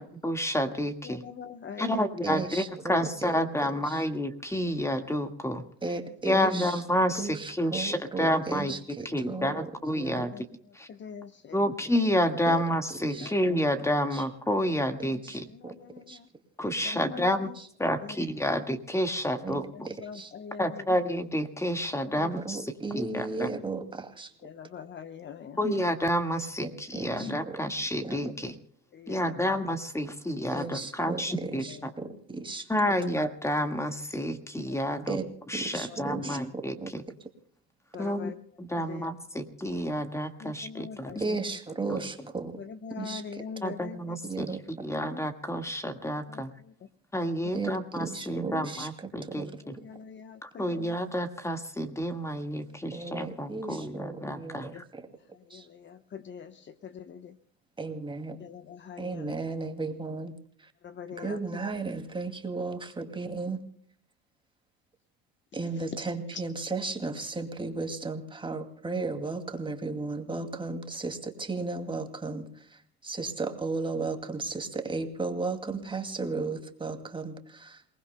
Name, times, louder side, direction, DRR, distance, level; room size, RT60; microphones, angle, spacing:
voice 1, 0.2-1.2 1.8-5.6 6.2-8.7 9.0-10.5 10.7-10.9 11.5-15.5 16.6-17.5 17.8-19.9 20.6-23.5 25.6-28.6 29.1-31.9 32.7-35.2 35.5-37.0 38.0-41.1 41.9-42.0 43.6-46.5 47.1-49.8 50.4-54.8, equal, 10° left, 7 dB, 1.7 m, -29 dB
voice 2, 1.0-2.1 6.0-6.1 9.1-9.4 10.1-11.7 13.2-13.4 15.5-16.3 16.8-17.6 18.0-18.2 19.7-20.8 22.0-22.3 24.4-25.7 28.9-29.5 31.6-32.1 32.9-33.1 34.7-34.8 35.7-36.4 37.9-38.3 38.8-39.1 40.4-41.6 42.6-44.2 45.0-45.3 46.3-46.7 48.4-48.9 49.6-51.0 54.7-54.8 55.3-57.4 58.4-59.4 60.8-61.4 65.6-65.8 66.3-66.4, left 7 dB, 35° left, 9 dB, 1.0 m, -43 dB
voice 3, 2.2-3.3 5.8-6.7 7.2-7.3 7.7-9.7 10.0-10.2 12.5-12.6 13.1-13.3 15.6-15.7 16.1-16.2 19.4-19.6 20.1-20.3 22.5-24.3 26.6-27.6 28.0-28.2 30.5-32.7 35.1-35.2 35.5-36.9 41.2-42.6 43.0-43.2 44.3-44.6 47.5-48.9 49.4-49.5 52.9-55.0 55.5-55.6 57.8-58.4 59.0-60.3 61.2-63.6 65.5-72.5 73.0-77.8, right 3 dB, 15° right, 6 dB, 2.4 m, -34 dB
28.5 x 19.5 x 2.2 m, 0.64 s
supercardioid pair, 110°, 33 cm